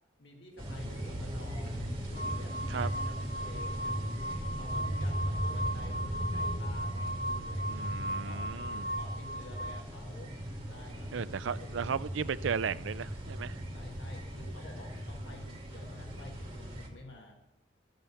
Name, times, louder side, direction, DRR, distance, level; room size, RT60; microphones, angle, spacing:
voice 1, 0.2-1.8 2.1-4.0 4.6-8.5 9.0-10.3 10.7-11.1 11.6-11.8 13.7-17.4, left 2 dB, 70° left, 0 dB, 1.6 m, -51 dB
sound 1, 0.6-16.9, equal, 30° right, 2.7 m, -37 dB
sound 2, 2.1-9.8, right 1 dB, 90° left, 2.5 m, -38 dB
voice 2, 7.7-8.9 11.1-13.6, right 6 dB, 80° right, 15 dB, 0.4 m, -35 dB
13.0 x 7.5 x 6.9 m, 0.96 s
head